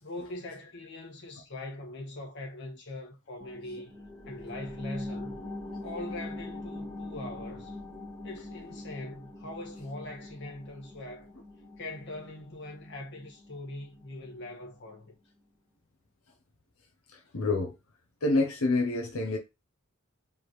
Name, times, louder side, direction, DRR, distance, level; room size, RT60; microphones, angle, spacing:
voice 1, 0.0-3.9 4.2-5.4 5.8-7.8 8.2-11.3 11.8-15.1, left 1 dB, 55° left, 1.6 m, -42 dB
sound 1, 3.4-14.5 14.9-15.0, left 2 dB, 10° left, 1.8 m, -43 dB
voice 2, 17.1-17.8 18.2-19.4, left 2 dB, 85° left, 0.8 m, -27 dB
4.8 x 3.5 x 3.1 m
head